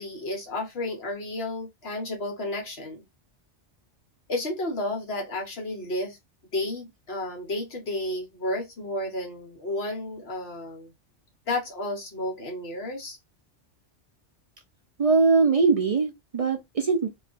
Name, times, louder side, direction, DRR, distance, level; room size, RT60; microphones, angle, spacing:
voice 1, 0.0-3.0 4.3-6.2 6.5-10.9 11.5-13.2, left 1 dB, 60° left, 1.3 m, -32 dB
voice 2, 15.0-17.1, right 4 dB, 60° right, 0.3 m, -21 dB
2.8 x 2.3 x 2.5 m
omnidirectional pair, 1.2 m